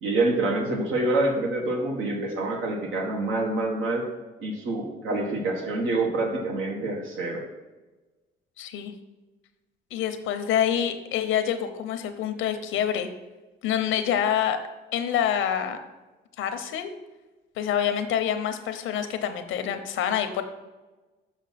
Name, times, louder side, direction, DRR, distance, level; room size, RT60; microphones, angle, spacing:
voice 1, 0.0-4.1 4.4-7.4, right 2 dB, 85° right, 1 dB, 1.5 m, -26 dB
voice 2, 8.6-8.9 9.9-13.1 13.6-14.6 14.9-15.8 16.4-16.9 17.6-20.4, left 9 dB, 85° left, 9 dB, 0.8 m, -26 dB
6.6 x 6.0 x 4.1 m, 1.2 s
cardioid pair, 90°, 20 cm